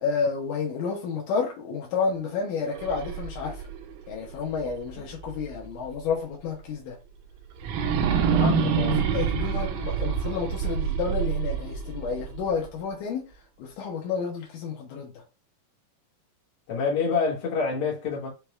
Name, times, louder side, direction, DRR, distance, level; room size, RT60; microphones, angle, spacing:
voice 1, 0.0-3.7 4.1-7.0 8.8-13.3 13.6-15.2, left 5 dB, 80° left, 2.4 m, -30 dB
sound 1, 2.7-5.7 6.1-6.2 7.6-12.6, right 6 dB, 75° right, 1.8 m, -27 dB
voice 2, 8.3-9.0 16.7-18.3, left 5 dB, 60° left, 2.4 m, -27 dB
5.8 x 2.3 x 3.1 m
omnidirectional pair, 3.7 m